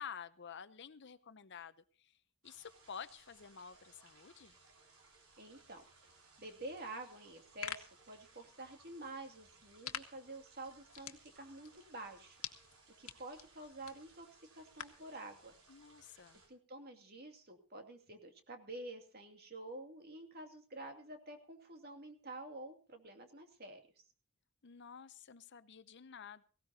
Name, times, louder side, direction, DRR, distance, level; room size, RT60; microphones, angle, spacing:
voice 1, 0.0-2.2 2.4-4.6 15.7-16.4 24.6-26.4, left 7 dB, 55° left, 14 dB, 0.7 m, -50 dB
sound 1, 2.4-16.5, right 3 dB, 85° right, 5.4 m, -64 dB
voice 2, 5.4-5.8 6.4-12.4 13.0-14.3 14.5-15.5 16.5-23.8, right 2 dB, 45° right, 5 dB, 2.5 m, -49 dB
sound 2, 7.3-15.1, left 9 dB, 75° left, 1.5 m, -50 dB
18.5 x 17.0 x 2.8 m, 0.37 s
head